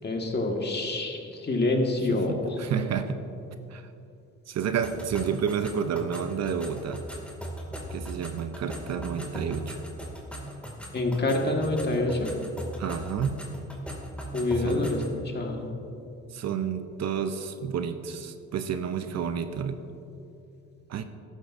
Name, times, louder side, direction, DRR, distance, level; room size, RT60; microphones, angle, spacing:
voice 1, 0.0-2.6 10.9-12.3 14.3-15.7, left 2 dB, 35° left, 1 dB, 1.7 m, -27 dB
voice 2, 2.3-3.2 3.7-3.8 4.5-7.0 7.9-9.8 12.8-13.4 14.6-15.0 16.3-19.8 20.9-21.0, right 7 dB, 60° right, 9 dB, 0.7 m, -30 dB
sound 1, 4.8-15.2, equal, 5° left, 2.2 m, -39 dB
14.5 x 12.0 x 2.6 m, 2.7 s
cardioid pair, 90°, 30 cm